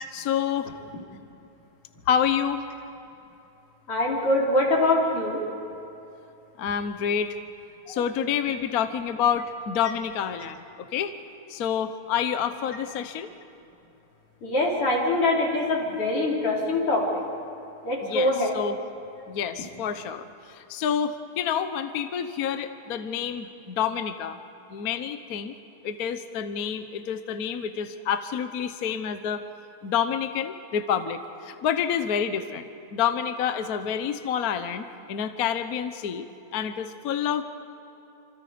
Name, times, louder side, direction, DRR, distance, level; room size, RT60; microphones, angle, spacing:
voice 1, 0.1-0.7 2.1-2.6 6.6-7.4 7.9-11.1 11.5-13.3 18.0-18.8 19.3-24.4 24.7-25.5 25.8-29.5 29.8-36.3 36.5-37.4, left 8 dB, 55° left, 9 dB, 1.2 m, -28 dB
voice 2, 3.9-5.4 7.9-8.0 14.4-17.2 17.8-18.5, left 2 dB, 85° left, -3 dB, 4.8 m, -24 dB
28.0 x 26.5 x 5.1 m, 2.9 s
omnidirectional pair, 2.4 m